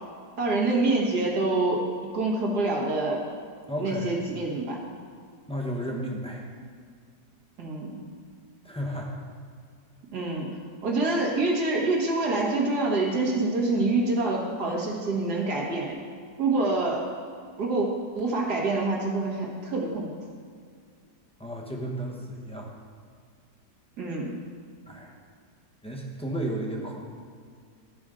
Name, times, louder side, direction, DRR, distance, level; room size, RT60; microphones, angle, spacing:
voice 1, 0.4-3.2 3.8-4.8 7.6-8.0 10.1-10.5 10.8-16.0 16.4-17.1 17.6-17.9 18.2-20.1 24.0-24.4, right 2 dB, 65° right, -2 dB, 1.9 m, -26 dB
voice 2, 3.7-4.2 5.5-6.5 8.6-9.2 21.4-22.7 24.9-25.1 25.8-27.0, right 1 dB, 5° left, -2 dB, 0.6 m, -33 dB
14.0 x 5.2 x 3.7 m, 2.1 s
omnidirectional pair, 1.9 m